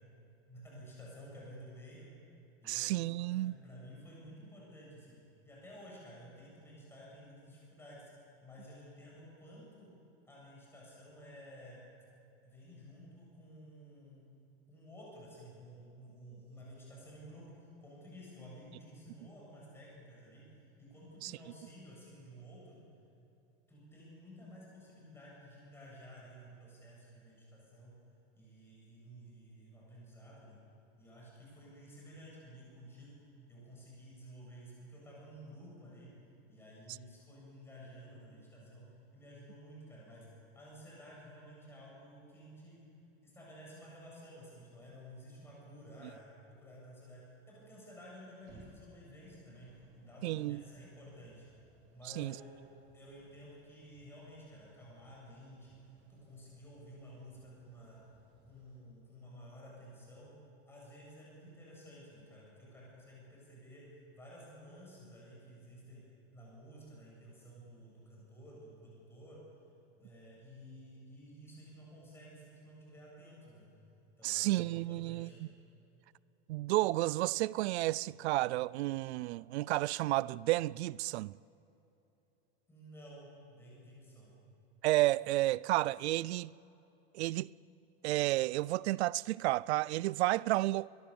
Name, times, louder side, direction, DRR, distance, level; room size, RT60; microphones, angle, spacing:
voice 1, 0.5-2.1 2.6-5.1 5.4-9.9 10.3-11.8 12.4-14.2 14.7-20.4 20.8-22.8 23.7-28.0 28.4-30.6 31.0-33.2 33.5-36.1 36.5-38.9 39.1-40.3 40.5-42.8 43.2-46.2 46.5-51.5 51.9-52.7 52.9-55.7 56.1-58.0 58.5-60.3 60.7-63.8 64.1-66.0 66.3-69.4 69.9-73.6 74.2-75.4 82.7-84.3, equal, 5° left, 7.6 m, -53 dB
voice 2, 2.7-3.6 21.2-21.3 50.2-50.6 52.2-52.4 74.2-75.5 76.5-81.3 84.8-86.5 87.1-87.5 88.0-90.9, right 18 dB, 75° right, 0.5 m, -31 dB
sound 1, 48.4-58.8, right 2 dB, 40° right, 5.5 m, -65 dB
22.5 x 22.0 x 7.1 m
supercardioid pair, 175°, 33 cm